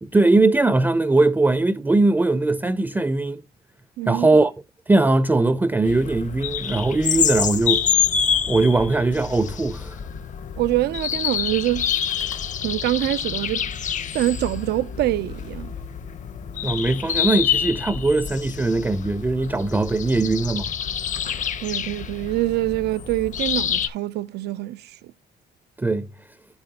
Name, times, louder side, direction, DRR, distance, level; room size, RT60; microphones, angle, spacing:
voice 1, 0.0-3.4 4.1-4.5 4.9-7.9 8.5-10.0 16.6-20.7 25.8-26.0, right 2 dB, 10° right, 0.5 m, -20 dB
voice 2, 4.0-4.3 10.6-11.9 12.6-13.7 14.1-15.7 21.6-25.0, right 16 dB, 75° right, 0.4 m, -25 dB
sound 1, 5.8-23.9, left 8 dB, 45° left, 0.8 m, -27 dB
12.5 x 4.2 x 2.8 m
cardioid pair, 115°, 17 cm